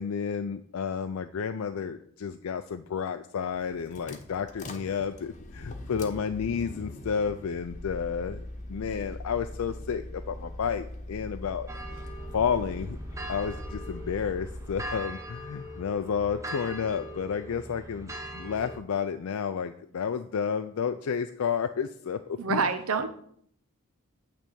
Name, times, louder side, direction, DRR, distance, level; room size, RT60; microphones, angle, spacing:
voice 1, 0.0-11.7 12.3-13.0 13.3-22.7, left 6 dB, 75° left, 8 dB, 0.4 m, -31 dB
sound 1, 3.5-15.0, left 1 dB, 35° left, 0.9 m, -41 dB
sound 2, 11.7-18.8, right 1 dB, 15° right, 0.8 m, -41 dB
voice 2, 22.4-23.1, right 5 dB, 80° right, 8 dB, 0.7 m, -27 dB
9.0 x 3.4 x 6.8 m, 0.64 s
head